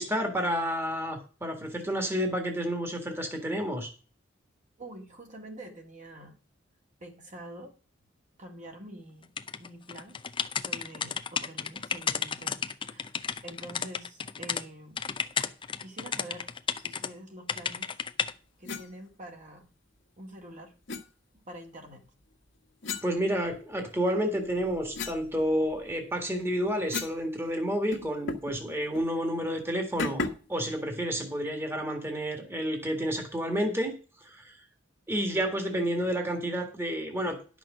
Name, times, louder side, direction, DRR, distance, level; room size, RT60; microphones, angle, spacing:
voice 1, 0.0-3.9 23.0-30.2 30.5-33.9 34.2-34.6 35.1-37.6, equal, 15° right, 4 dB, 1.8 m, -30 dB
voice 2, 4.8-6.4 7.0-7.8 8.4-9.3 9.6-10.2 10.5-13.1 13.4-15.0 15.4-16.5 16.8-18.0 18.6-19.7 20.2-20.7 21.3-22.1 22.8-23.0 26.2-26.3, right 1 dB, 40° right, 2 dB, 2.0 m, -46 dB
sound 1, 9.4-14.6 15.0-17.1 17.5-18.3, left 6 dB, 25° left, 0.6 m, -32 dB
sound 2, 18.6-18.9 20.9-21.1 22.8-23.9 24.3-27.2 27.5-27.6 27.9-28.6 28.9-29.1 30.0-30.5, left 4 dB, 70° left, 1.6 m, -37 dB
11.0 x 6.1 x 6.2 m, 0.37 s
head